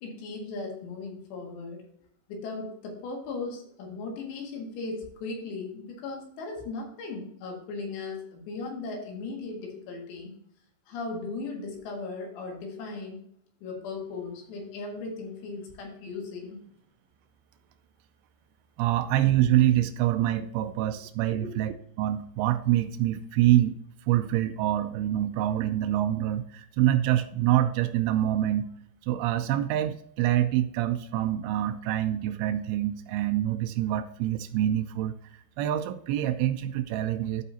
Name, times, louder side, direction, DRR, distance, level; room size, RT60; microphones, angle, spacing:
voice 1, 0.0-1.8 2.3-10.3 10.9-13.2 13.6-16.6 21.3-21.5, left 3 dB, 75° left, 1 dB, 4.0 m, -37 dB
voice 2, 18.8-23.7 24.1-28.7 29.1-37.4, right 13 dB, 90° right, 7 dB, 2.2 m, -26 dB
13.5 x 5.0 x 2.8 m, 0.71 s
omnidirectional pair, 5.1 m